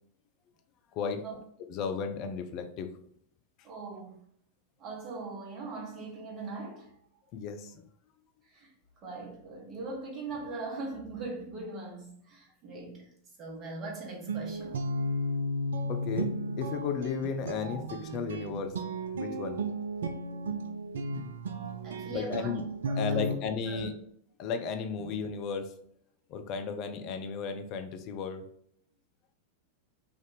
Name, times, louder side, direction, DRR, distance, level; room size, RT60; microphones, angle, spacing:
voice 1, 0.9-1.2 1.6-2.9 7.3-7.8 15.9-18.8 19.1-19.6 21.6-21.7 22.1-22.6 22.9-24.0 24.4-25.7 26.3-28.5, left 5 dB, 40° left, 7 dB, 0.5 m, -34 dB
voice 2, 3.6-4.2 4.8-6.9 8.5-8.7 9.0-13.0 13.4-14.8 21.8-22.5 22.8-23.3 23.7-23.9, right 3 dB, 30° right, -2 dB, 1.2 m, -40 dB
Guitar, 14.3-23.4, right 1 dB, 65° right, 0.3 m, -34 dB
3.4 x 2.5 x 3.9 m, 0.67 s
figure-of-eight pair, 90°, 0 cm